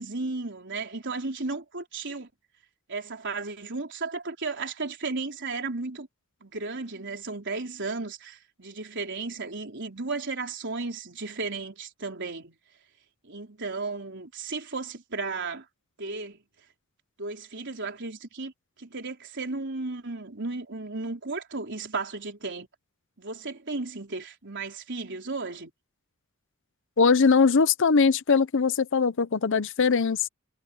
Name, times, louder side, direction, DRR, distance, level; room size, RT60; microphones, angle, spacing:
voice 1, 0.0-2.3 2.9-6.1 6.4-12.6 13.2-15.6 16.0-16.4 17.2-18.5 18.8-22.7 23.2-25.7, right 3 dB, 60° right, 4.3 m, -34 dB
voice 2, 27.0-30.3, left 5 dB, 60° left, 0.7 m, -21 dB
head